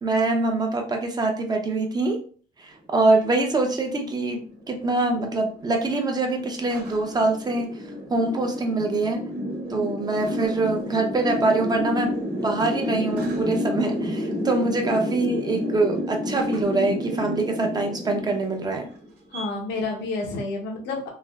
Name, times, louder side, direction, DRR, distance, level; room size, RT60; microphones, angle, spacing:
voice 1, 0.0-2.2 2.6-9.3 9.7-18.9, right 2 dB, 25° right, 3 dB, 0.6 m, -24 dB
sound 1, 3.1-19.5, left 1 dB, 70° right, 1.1 m, -31 dB
voice 2, 19.3-21.1, left 3 dB, 80° left, -1 dB, 0.9 m, -30 dB
3.3 x 2.4 x 2.3 m, 0.43 s
cardioid pair, 110°, 17 cm